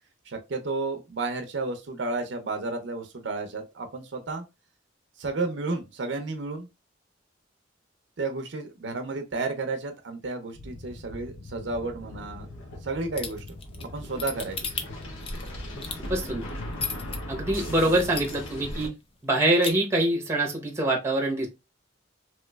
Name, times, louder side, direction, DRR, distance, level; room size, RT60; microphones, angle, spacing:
voice 1, 0.3-4.4 5.2-6.7 8.2-12.5 12.8-13.5 13.8-14.7, right 3 dB, 65° right, 0.6 m, -32 dB
sound 1, 10.5-18.9, left 1 dB, 85° left, 1.1 m, -38 dB
sound 2, 13.2-17.2 17.6-17.7 18.0-18.6 19.0-19.1 19.3-19.7, left 5 dB, 30° left, 0.4 m, -34 dB
voice 2, 16.1-16.4 17.3-18.9 19.2-21.5, right 1 dB, 15° right, 0.8 m, -24 dB
3.1 x 3.0 x 2.2 m
head